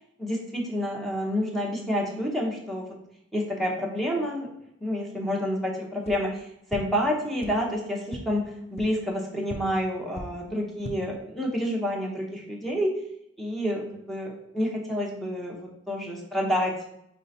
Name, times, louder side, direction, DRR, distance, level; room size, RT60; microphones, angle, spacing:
voice 1, 0.2-2.9 3.3-4.5 4.8-13.0 13.4-16.8, equal, ahead, -2 dB, 0.8 m, -29 dB
sound 1, 6.0-6.1 6.7-6.8 7.4-7.5 8.1-8.2 8.7-8.8 9.5-9.6 10.1-10.2 10.7-10.9, left 2 dB, 35° left, 0.4 m, -37 dB
5.5 x 3.2 x 2.7 m, 0.74 s
head